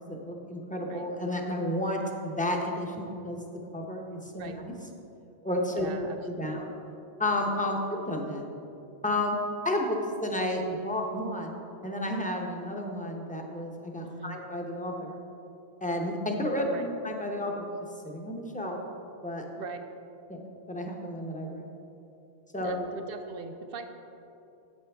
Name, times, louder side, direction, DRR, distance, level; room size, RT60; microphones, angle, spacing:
voice 1, 0.0-3.4 3.7-4.7 5.4-5.9 6.3-6.7 7.2-8.4 9.0-9.4 9.6-15.2 15.8-17.7 18.0-18.8 19.2-19.5 20.3-21.7 22.5-22.9, left 1 dB, 10° left, 1 dB, 0.7 m, -32 dB
voice 2, 5.7-6.6 14.0-14.4 16.6-16.9 19.6-19.8 22.6-23.9, right 5 dB, 65° right, 7 dB, 0.8 m, -40 dB
9.3 x 8.4 x 3.4 m, 2.9 s
omnidirectional pair, 1.1 m